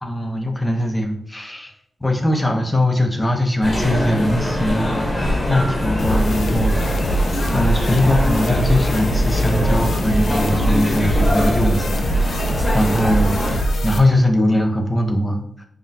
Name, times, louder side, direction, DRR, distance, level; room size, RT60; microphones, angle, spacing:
voice 1, 0.0-1.7 2.0-7.2 7.5-15.7, left 1 dB, 20° left, 3 dB, 0.7 m, -21 dB
sound 1, 3.6-13.6, left 1 dB, 40° left, 1.1 m, -23 dB
sound 2, 6.0-14.0, equal, 85° left, 0.5 m, -22 dB
5.6 x 2.3 x 2.7 m, 0.67 s
cardioid pair, 85°, 0 cm